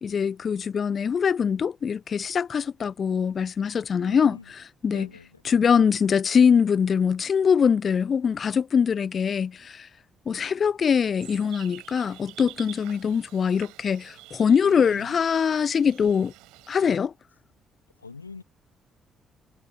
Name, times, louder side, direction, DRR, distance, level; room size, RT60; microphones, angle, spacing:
voice 1, 0.0-4.4 4.8-5.1 5.4-9.9 10.3-16.3 16.7-17.1, left 6 dB, 45° left, 0.7 m, -23 dB
voice 2, 4.0-4.5 4.9-5.4 14.6-15.2 18.0-18.4, left 4 dB, 85° left, 2.4 m, -43 dB
sound 1, 11.2-16.9, right 21 dB, 65° right, 5.3 m, -48 dB
figure-of-eight pair, 40°, 0 cm